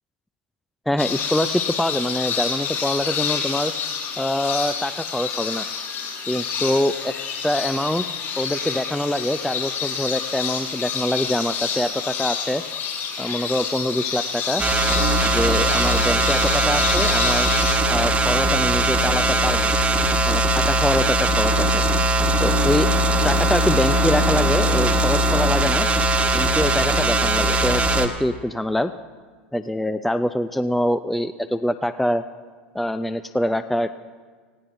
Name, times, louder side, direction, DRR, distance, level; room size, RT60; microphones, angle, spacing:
voice 1, 0.9-3.7 4.2-5.7 6.3-7.1 7.4-8.1 8.4-12.6 13.2-14.6 15.2-17.5 17.9-19.7 20.3-21.8 22.4-22.9 23.2-25.9 26.3-28.9 29.5-32.2 32.7-34.0, left 1 dB, ahead, 12 dB, 0.3 m, -24 dB
sound 1, 1.0-17.7, left 6 dB, 40° left, 4.7 m, -28 dB
sound 2, 14.6-28.1, right 1 dB, 20° right, 1.3 m, -20 dB
18.0 x 16.5 x 2.6 m, 1.5 s
figure-of-eight pair, 90°, 6 cm